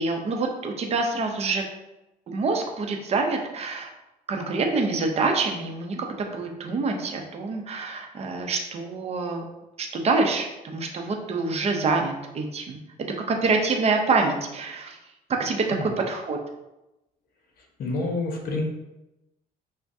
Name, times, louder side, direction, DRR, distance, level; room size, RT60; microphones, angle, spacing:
voice 1, 0.0-1.6 2.3-3.9 4.3-9.4 9.8-12.8 13.3-15.0 15.3-16.4, right 3 dB, 40° right, 3 dB, 0.7 m, -26 dB
voice 2, 17.8-18.6, left 3 dB, 60° left, 1 dB, 0.9 m, -28 dB
5.8 x 2.2 x 2.7 m, 0.96 s
cardioid pair, 110°, 17 cm